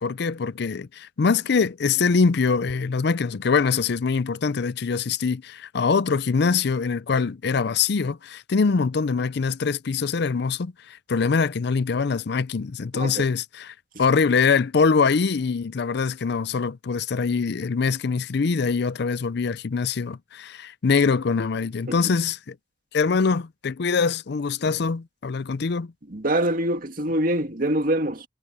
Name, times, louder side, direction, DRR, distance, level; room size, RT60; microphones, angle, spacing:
voice 1, 0.0-22.6 22.9-25.9, left 5 dB, 65° left, 0.5 m, -23 dB
voice 2, 12.9-13.2 26.1-28.2, right 1 dB, 50° right, 2.0 m, -24 dB
head